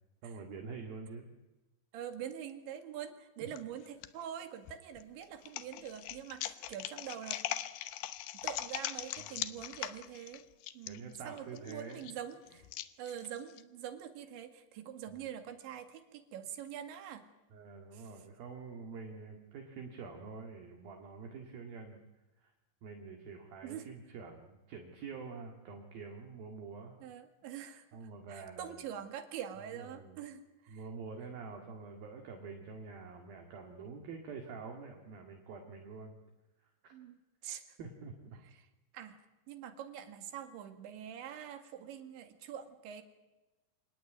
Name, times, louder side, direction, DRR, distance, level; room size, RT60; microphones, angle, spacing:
voice 1, 0.2-1.2 3.4-3.5 9.2-9.6 10.8-12.1 15.1-15.2 17.5-22.0 22.4-22.5 22.8-27.0 27.9-28.8 29.7-30.2 30.7-36.2 36.6-36.9 37.8-38.4, right 4 dB, 55° right, 3 dB, 3.6 m, -47 dB
voice 2, 1.9-7.4 8.3-10.4 10.7-12.7 13.0-17.2 17.9-18.0 23.6-23.9 27.0-27.8 28.3-30.9 36.9-37.2 37.4-37.6 38.9-39.2 39.5-43.0, right 9 dB, 75° right, 8 dB, 4.1 m, -44 dB
sound 1, 3.5-4.1 4.7-13.6, left 13 dB, 75° left, 2.6 m, -41 dB
26.5 x 19.0 x 9.4 m, 1.1 s
omnidirectional pair, 5.4 m